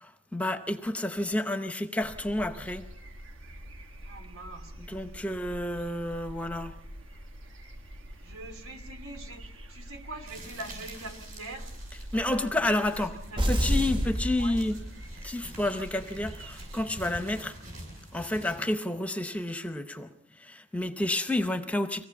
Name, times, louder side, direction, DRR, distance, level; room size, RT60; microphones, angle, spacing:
voice 1, 0.0-2.9 4.8-6.7 12.1-13.2 13.5-14.8 15.2-17.6 18.1-20.1 20.4-22.0, left 1 dB, 5° left, 0.7 m, -30 dB
sound 1, 2.0-17.1, equal, 60° right, 1.2 m, -46 dB
voice 2, 4.0-5.2 8.2-11.7 12.1-13.0 13.3-13.8 14.4-14.6, right 2 dB, 75° right, 2.7 m, -44 dB
sound 2, 10.3-18.6, right 1 dB, 40° right, 6.8 m, -47 dB
sound 3, 13.4-15.2, equal, 20° right, 0.9 m, -28 dB
24.0 x 17.5 x 7.1 m
head